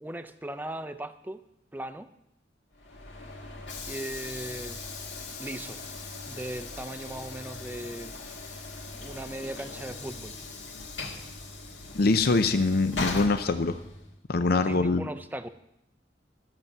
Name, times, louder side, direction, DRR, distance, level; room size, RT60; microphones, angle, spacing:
voice 1, 0.0-1.4 1.7-2.1 3.9-4.8 5.4-5.8 6.3-8.1 8.9-10.3 14.6-15.5, right 1 dB, 10° right, 11 dB, 0.5 m, -38 dB
Train / Sliding door, 2.7-14.2, left 3 dB, 80° left, 2.0 m, -39 dB
voice 2, 11.9-13.8 14.3-15.0, left 3 dB, 55° left, 9 dB, 0.6 m, -23 dB
13.5 x 7.2 x 6.7 m, 0.82 s
head